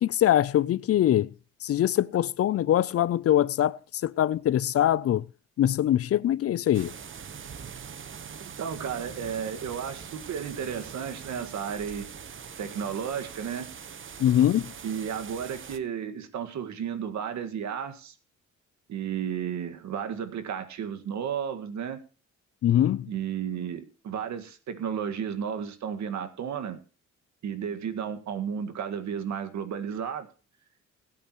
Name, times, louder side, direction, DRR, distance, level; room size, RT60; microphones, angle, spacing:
voice 1, 0.0-1.3 1.6-5.3 5.6-6.9 14.2-14.7 22.6-23.1, left 11 dB, 50° left, 0.5 m, -23 dB
sound 1, 6.7-15.8, right 7 dB, 40° right, 1.1 m, -43 dB
voice 2, 8.4-12.1 12.6-13.7 14.8-18.1 18.9-22.0 23.1-26.8 27.4-30.3, right 8 dB, 65° right, 1.9 m, -33 dB
20.5 x 8.6 x 3.1 m
cardioid pair, 90°, 30 cm